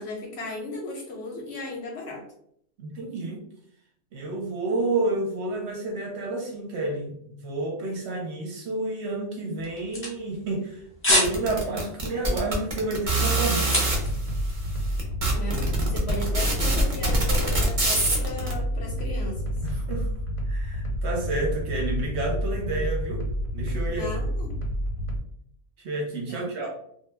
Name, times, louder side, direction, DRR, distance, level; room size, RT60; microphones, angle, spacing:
voice 1, 0.0-2.3 15.3-15.6 15.9-19.5 23.9-24.5 26.3-26.7, left 2 dB, 60° left, -1 dB, 0.8 m, -36 dB
voice 2, 2.8-3.4 4.1-13.9 19.6-20.1 20.4-23.2 23.5-24.1 25.8-26.7, right 2 dB, 65° right, 0 dB, 0.8 m, -30 dB
sound 1, 9.6-10.7 11.0-11.4 11.7-12.0 12.4-14.2 14.5-14.6, equal, 15° left, 0.5 m, -25 dB
sound 2, 11.1-14.0 14.7-14.8 15.0-18.5, right 2 dB, 45° right, 0.4 m, -24 dB
sound 3, 13.9-25.2, equal, 85° left, 1.0 m, -29 dB
2.2 x 2.1 x 3.1 m, 0.69 s
omnidirectional pair, 1.4 m